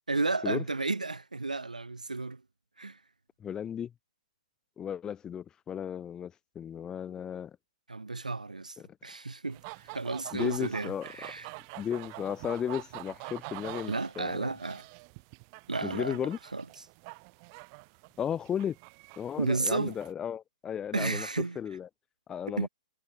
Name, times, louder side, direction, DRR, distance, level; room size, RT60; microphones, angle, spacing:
voice 1, 0.1-2.4 2.8-3.0 7.9-8.8 9.0-11.5 13.9-14.8 15.7-16.6 19.4-20.0 20.9-21.6 22.6-22.7, right 3 dB, 85° right, 4.6 m, -32 dB
voice 2, 3.4-3.9 4.8-7.6 8.8-8.9 10.3-11.1 11.8-14.5 15.8-16.4 18.2-18.8 19.2-21.3 21.5-21.9 22.3-22.7, left 8 dB, 15° left, 1.3 m, -35 dB
sound 1, 9.5-20.1, right 35 dB, 35° right, 2.2 m, -46 dB
figure-of-eight pair, 115°, 4 cm